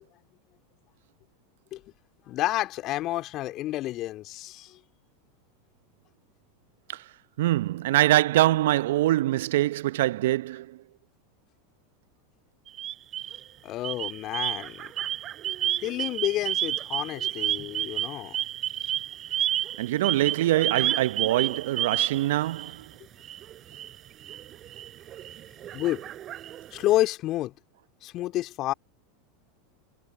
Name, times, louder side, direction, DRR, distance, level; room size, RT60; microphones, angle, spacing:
voice 1, 2.2-4.8 13.6-14.9 15.8-18.4 25.7-26.0 26.7-27.5 28.0-28.7, left 15 dB, 45° left, 2.8 m, -29 dB
voice 2, 7.4-10.8 19.8-22.9, right 15 dB, 65° right, 0.7 m, -24 dB
sound 1, 12.7-13.4 13.8-22.8 23.2-26.9, right 12 dB, 40° right, 6.8 m, -31 dB
hypercardioid pair, 85°, 0 cm